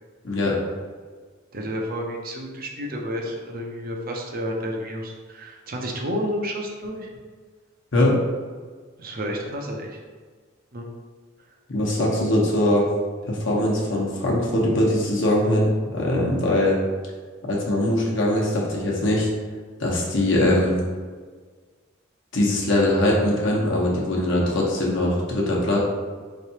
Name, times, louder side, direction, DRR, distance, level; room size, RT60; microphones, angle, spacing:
voice 1, 0.2-0.6 7.9-8.2 11.7-12.9 13.3-16.8 17.4-19.3 19.8-20.8 22.3-25.8, left 1 dB, 65° left, -3 dB, 1.0 m, -21 dB
voice 2, 1.5-7.1 9.0-10.0 10.7-10.9, equal, 45° right, 0 dB, 0.6 m, -30 dB
4.5 x 3.3 x 2.8 m, 1.5 s
head